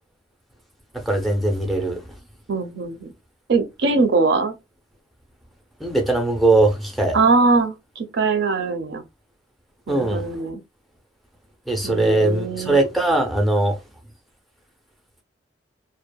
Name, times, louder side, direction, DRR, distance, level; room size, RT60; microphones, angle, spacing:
voice 1, 1.1-2.0 5.8-7.2 9.9-10.3 11.7-13.8, right 2 dB, ahead, 0.5 m, -20 dB
voice 2, 2.5-3.1 3.5-4.5 7.1-9.0 9.9-10.6 11.8-12.8, right 3 dB, 65° right, 0.5 m, -21 dB
2.7 x 2.0 x 2.2 m
head